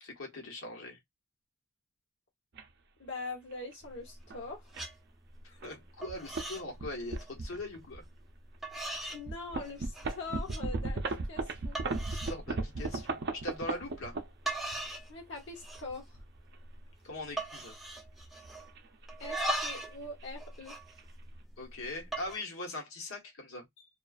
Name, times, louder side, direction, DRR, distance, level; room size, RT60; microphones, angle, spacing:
voice 1, 0.0-1.0 5.4-8.0 12.1-14.2 17.0-17.7 21.6-23.9, left 2 dB, 75° left, 1.0 m, -41 dB
sound 1, 2.5-2.6 3.5-3.7 4.3-4.4 4.7-4.9 5.6-5.7 6.1-6.5 6.8-8.0 8.5-8.6 9.2-14.8 15.6-16.6 18.2-19.4 19.7-19.9 20.2-20.3 20.6-21.0, right 3 dB, 50° right, 0.5 m, -36 dB
voice 2, 3.0-4.6 9.1-11.8 15.1-16.1 19.2-20.8, left 3 dB, 55° left, 0.8 m, -43 dB
sound 2, 3.8-4.4 4.7-4.9 5.4-5.7 6.0-6.7 7.0-7.3 8.0-8.1 8.6-9.2 9.6-10.1 10.5-10.6 11.2-11.3 11.7-12.4 12.8-13.1 14.1-14.2 14.5-15.1 15.4-16.0 16.3-16.4 16.6-16.9 17.4-18.7 19.1-20.0 20.2-21.5 22.0-22.4, right 1 dB, ahead, 0.5 m, -39 dB
2.4 x 2.3 x 2.3 m
head